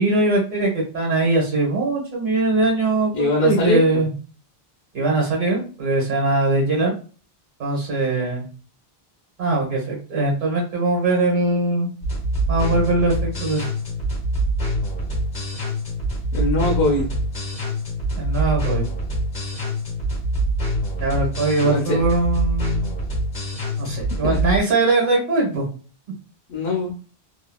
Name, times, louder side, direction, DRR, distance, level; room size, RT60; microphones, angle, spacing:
voice 1, 0.0-4.1 4.9-6.9 7.6-8.4 9.4-11.9 12.5-13.7 18.2-18.8 21.0-22.9 23.8-25.6, right 2 dB, 60° right, -1 dB, 1.2 m, -21 dB
voice 2, 3.1-4.0 16.3-17.1 21.6-22.0 24.2-24.4 26.5-26.9, left 2 dB, 90° left, -1 dB, 0.9 m, -22 dB
sound 1, 12.0-24.6, right 1 dB, 45° left, 1.2 m, -25 dB
2.8 x 2.7 x 2.2 m, 0.37 s
omnidirectional pair, 1.0 m